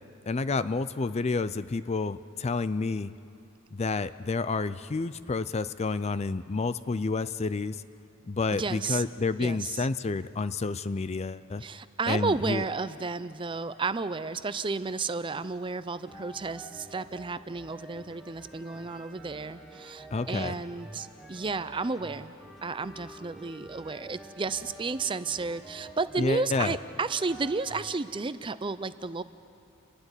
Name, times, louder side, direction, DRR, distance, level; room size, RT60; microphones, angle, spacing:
voice 1, 0.2-3.1 3.7-7.8 8.3-11.6 12.1-12.6 20.1-20.5 26.2-26.8, left 3 dB, 30° left, 14 dB, 0.4 m, -29 dB
voice 2, 8.5-9.0 9.4-9.9 11.6-22.3 22.6-29.2, right 4 dB, 25° right, 14 dB, 0.5 m, -32 dB
sound 1, 16.0-27.9, right 1 dB, ahead, 1.9 m, -48 dB
29.0 x 12.0 x 9.8 m, 2.5 s
head